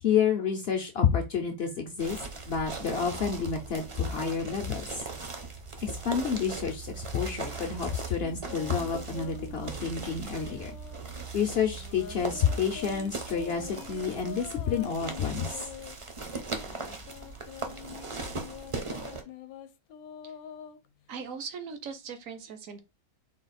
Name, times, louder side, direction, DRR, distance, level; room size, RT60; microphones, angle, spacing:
voice 1, 0.0-2.2 2.5-5.0 5.8-10.7 11.3-15.7, left 7 dB, 55° left, 0.7 m, -29 dB
sound 1, 2.0-19.2, right 4 dB, 35° right, 0.5 m, -39 dB
sound 2, 8.0-11.2 11.7-16.0 16.6-21.3, left 8 dB, 80° left, 1.0 m, -45 dB
voice 2, 21.1-22.8, right 6 dB, 70° right, 1.1 m, -39 dB
4.1 x 2.3 x 4.0 m
omnidirectional pair, 1.5 m